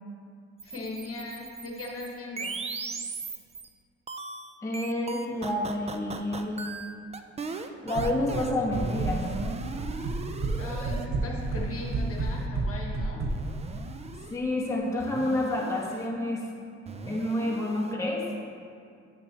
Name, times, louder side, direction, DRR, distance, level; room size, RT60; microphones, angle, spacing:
voice 1, 0.6-2.6 10.6-13.2, left 2 dB, 50° left, -1 dB, 1.2 m, -38 dB
sound 1, 0.6-3.7 4.1-11.1 11.4-12.5 13.3-14.4 15.0-16.1 16.9-17.9, right 4 dB, 20° right, 0.4 m, -38 dB
voice 2, 4.6-6.6 7.8-9.2 14.3-16.4 17.0-18.3, left 1 dB, 10° left, -3 dB, 1.1 m, -29 dB
sound 2, 7.9-8.5 8.7-9.5 9.8-10.6 10.8-13.3, right 3 dB, 45° right, 0.8 m, -29 dB
8.5 x 5.9 x 3.3 m, 2.3 s
cardioid pair, 90°, 30 cm